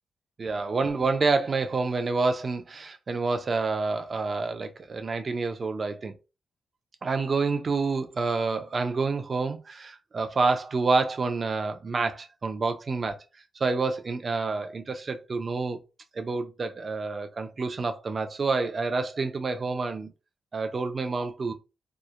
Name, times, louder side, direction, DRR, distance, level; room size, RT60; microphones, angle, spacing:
voice 1, 0.4-6.1 7.0-13.2 13.6-15.8 16.1-20.1 20.5-21.5, right 4 dB, 35° right, 0.3 m, -28 dB
2.8 x 2.0 x 2.3 m
wide cardioid pair, 140°, 0 cm